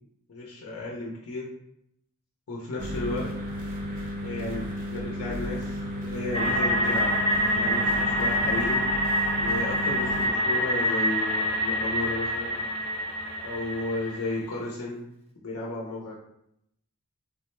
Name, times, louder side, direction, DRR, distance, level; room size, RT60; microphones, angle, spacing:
voice 1, 0.3-1.5 2.5-3.3 4.2-4.6 4.9-7.1 7.5-8.8 9.4-12.6 13.4-15.1 15.4-16.2, left 2 dB, 75° left, -4 dB, 0.6 m, -33 dB
sound 1, 2.8-10.3, equal, 40° right, 0.6 m, -34 dB
sound 2, 6.3-14.4, equal, 30° left, 0.5 m, -26 dB
3.5 x 2.1 x 3.0 m, 0.77 s
head